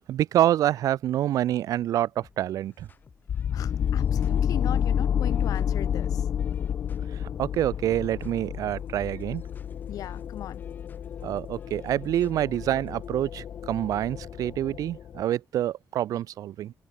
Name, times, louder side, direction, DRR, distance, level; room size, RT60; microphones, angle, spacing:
voice 1, 0.1-2.9 7.1-9.4 11.2-16.7, right 12 dB, 75° right, 0.9 m, -27 dB
sound 1, 2.2-13.1, left 5 dB, 30° left, 5.4 m, -55 dB
sound 2, 3.3-15.2, left 8 dB, 45° left, 0.6 m, -30 dB
voice 2, 3.5-6.2 9.9-10.6, left 12 dB, 80° left, 2.8 m, -38 dB
cardioid pair, 160°, 6 cm